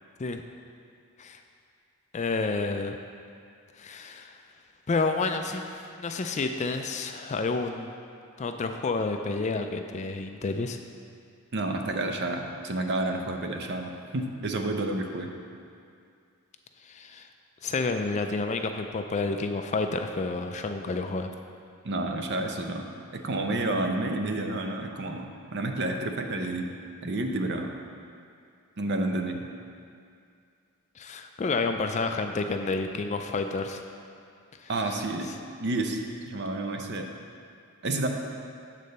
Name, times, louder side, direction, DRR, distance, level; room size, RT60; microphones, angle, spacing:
voice 1, 2.1-3.0 3.8-4.4 4.9-7.9 8.4-10.8 16.8-17.3 17.6-21.3 31.0-33.8 34.6-34.7, left 3 dB, 30° left, 6 dB, 0.4 m, -30 dB
voice 2, 11.5-15.3 21.8-22.9 23.1-26.7 27.0-27.7 28.8-29.5 34.7-35.3 35.6-36.0 36.3-37.1 37.8-38.1, right 2 dB, 50° right, 4 dB, 0.6 m, -30 dB
8.5 x 4.1 x 6.5 m, 2.4 s
head